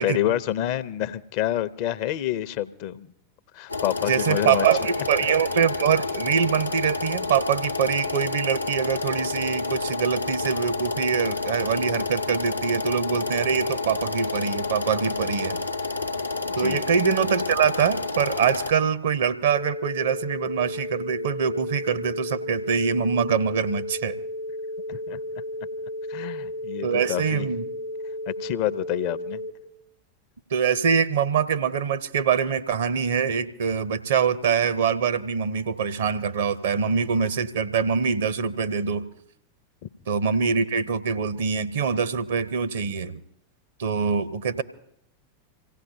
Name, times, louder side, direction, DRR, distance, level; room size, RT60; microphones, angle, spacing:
voice 1, 0.0-3.1 3.5-4.7 16.4-16.9 24.9-25.2 26.1-27.5 28.3-29.4 39.8-39.9, left 12 dB, 45° left, 0.5 m, -28 dB
sound 1, 3.7-18.7, left 3 dB, 85° left, 0.7 m, -29 dB
voice 2, 4.1-15.6 16.6-24.2 26.8-27.6 30.5-39.0 40.1-43.2 43.8-44.6, right 6 dB, 60° right, 0.7 m, -24 dB
sound 2, 19.5-29.5, left 1 dB, 85° right, 2.2 m, -34 dB
26.0 x 16.5 x 2.7 m
figure-of-eight pair, 90°, 0 cm